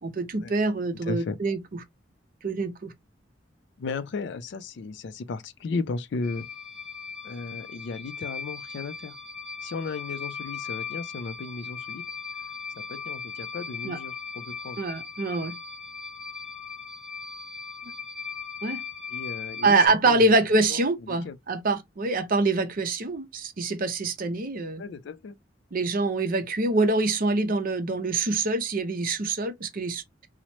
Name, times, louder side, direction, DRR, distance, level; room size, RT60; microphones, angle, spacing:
voice 1, 0.0-1.6 2.4-2.9 13.8-14.0 14.8-15.5 18.6-18.8 19.6-24.8 25.7-30.0, right 3 dB, 50° right, 0.6 m, -25 dB
voice 2, 1.1-1.4 3.8-6.5 7.2-9.2 9.6-12.0 12.8-14.8 19.1-20.3 20.7-21.4 24.8-25.4, left 4 dB, 65° left, 0.4 m, -35 dB
sound 1, 6.2-19.9, left 6 dB, 5° left, 1.0 m, -38 dB
3.0 x 2.0 x 2.7 m
head